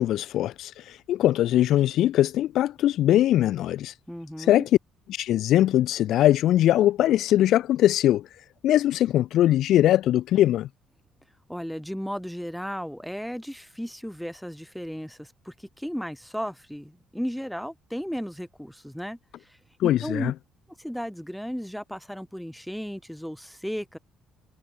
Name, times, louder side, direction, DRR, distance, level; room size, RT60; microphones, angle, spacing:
voice 1, 0.0-3.9 4.4-4.7 5.1-8.3 8.6-10.7 19.8-20.3, left 13 dB, 70° left, 0.4 m, -21 dB
voice 2, 4.1-4.6 11.5-19.2 19.4-19.6 19.8-20.3 20.8-24.0, equal, ahead, 1.6 m, -34 dB
supercardioid pair, 75°, 0 cm